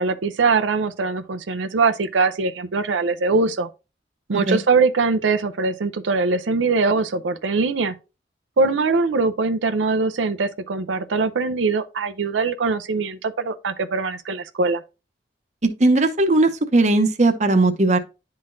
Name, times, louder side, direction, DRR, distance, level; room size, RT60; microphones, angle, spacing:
voice 1, 0.0-3.7 4.3-7.9 8.6-14.8, right 4 dB, 90° right, 0.6 m, -22 dB
voice 2, 15.6-18.0, right 2 dB, 40° right, 0.7 m, -18 dB
10.5 x 3.8 x 2.5 m
head